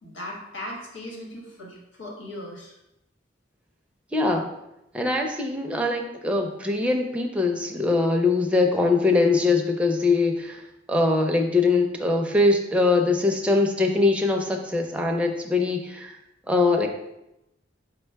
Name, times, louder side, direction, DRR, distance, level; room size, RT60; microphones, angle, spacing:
voice 1, 0.0-2.7, left 1 dB, 85° left, -3 dB, 1.3 m, -38 dB
voice 2, 4.1-4.5 4.9-10.6 10.9-16.1 16.5-16.9, left 3 dB, 5° right, 2 dB, 0.4 m, -22 dB
5.2 x 2.2 x 4.5 m, 0.88 s
head